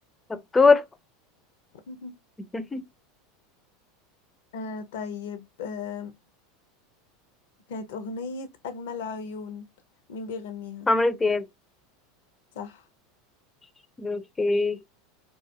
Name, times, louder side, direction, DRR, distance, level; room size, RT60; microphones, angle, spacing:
voice 1, 0.3-0.8 2.5-2.8 10.9-11.4 14.0-14.8, left 3 dB, 15° left, 0.4 m, -22 dB
voice 2, 4.5-6.1 7.7-9.6 10.1-10.9 12.5-12.8, left 4 dB, 75° left, 0.5 m, -36 dB
2.4 x 2.3 x 2.6 m
hypercardioid pair, 95°, 0 cm